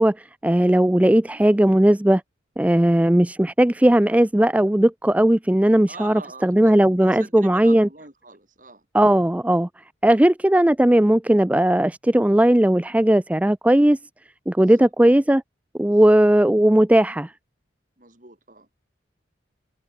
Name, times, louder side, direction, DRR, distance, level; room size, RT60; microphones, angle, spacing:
voice 1, 0.0-2.2 2.6-7.9 8.9-9.7 10.0-14.0 14.5-15.4 15.8-17.3, right 1 dB, 10° right, 0.4 m, -17 dB
voice 2, 5.9-8.9 10.0-10.2 14.6-14.9 15.9-16.2 18.0-18.7, right 3 dB, 45° right, 5.6 m, -44 dB
head